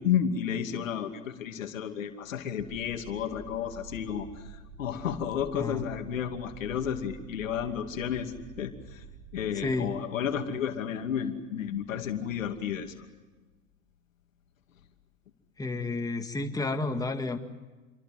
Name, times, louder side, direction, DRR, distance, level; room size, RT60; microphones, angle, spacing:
voice 1, 0.0-4.3 4.8-9.0 9.3-12.9, left 8 dB, 85° left, 6 dB, 2.7 m, -32 dB
sound 1, 2.6-9.7, right 4 dB, 35° right, 7.5 m, -48 dB
voice 2, 9.6-9.9 15.6-17.4, left 3 dB, 10° left, 5 dB, 2.0 m, -31 dB
28.0 x 24.0 x 7.8 m, 1.3 s
hypercardioid pair, 105°, 38 cm